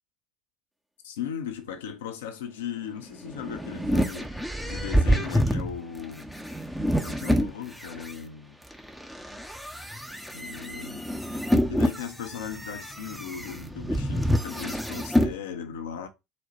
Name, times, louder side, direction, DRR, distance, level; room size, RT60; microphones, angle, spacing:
voice 1, 1.0-4.4 4.6-6.3 7.0-8.6 10.3-11.3 11.7-16.1, left 8 dB, 75° left, 0.7 m, -37 dB
sound 1, 3.1-8.1 8.7-15.3, equal, ahead, 0.7 m, -27 dB
4.3 x 2.2 x 4.1 m
figure-of-eight pair, 65°, 0 cm